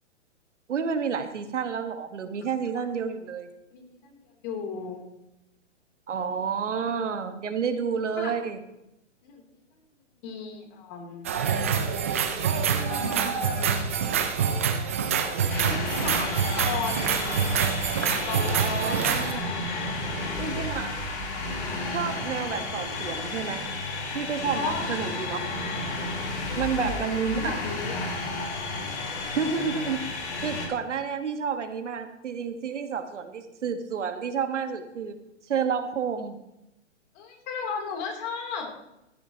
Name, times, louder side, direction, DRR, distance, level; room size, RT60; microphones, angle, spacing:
voice 1, 0.7-3.5 6.1-8.6 18.6-19.5 20.4-21.0 21.9-23.7 24.1-25.4 26.5-27.6 29.3-35.2 35.5-36.4, right 6 dB, 75° right, 7 dB, 1.6 m, -30 dB
voice 2, 3.7-5.1 8.2-8.3 9.2-9.4 10.2-11.3 12.9-14.0 15.7-17.4 18.0-18.8 19.7-20.4 24.5-25.2 26.5-28.1 37.1-38.7, left 5 dB, 35° left, 2 dB, 3.2 m, -36 dB
sound 1, 11.2-19.3, right 7 dB, 15° right, 0.3 m, -26 dB
sound 2, 15.5-30.7, left 2 dB, 65° left, 4.2 m, -32 dB
15.5 x 11.0 x 3.0 m, 0.89 s
hypercardioid pair, 135°, 37 cm